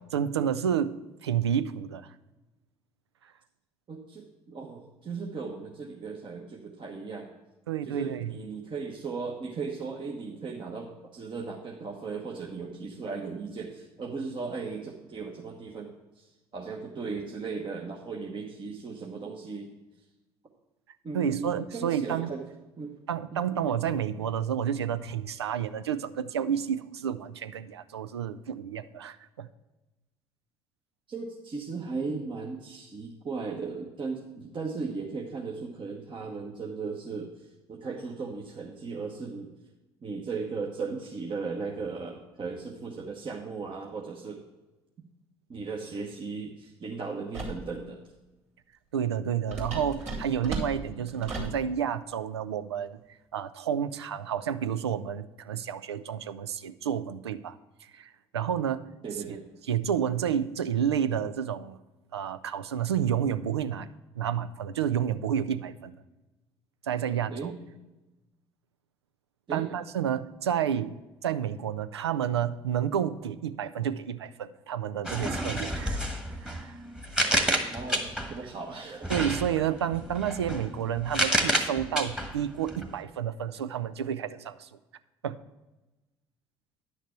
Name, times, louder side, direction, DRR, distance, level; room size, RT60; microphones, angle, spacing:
voice 1, 0.1-2.1 7.7-8.4 21.1-22.3 23.1-29.5 48.9-53.0 53.3-58.9 59.7-61.8 62.1-63.9 64.2-66.0 66.8-67.5 69.5-71.0 71.2-76.1 76.4-76.8 79.1-84.7 85.2-85.4, right 9 dB, 85° right, 13 dB, 0.4 m, -30 dB
voice 2, 3.9-7.3 7.8-19.7 21.0-22.4 22.8-22.9 23.3-23.5 31.1-39.5 40.0-44.4 45.5-48.0 59.0-59.5 67.3-67.6 69.5-69.7 77.3-78.0 78.3-79.1, right 4 dB, 40° right, -1 dB, 1.2 m, -37 dB
sound 1, 47.3-47.7 49.5-51.6, right 2 dB, 55° right, 2.6 m, -35 dB
sound 2, 75.0-78.4 79.0-82.9, right 1 dB, 5° right, 1.4 m, -30 dB
10.5 x 6.5 x 4.6 m, 1.1 s
hypercardioid pair, 55°, 13 cm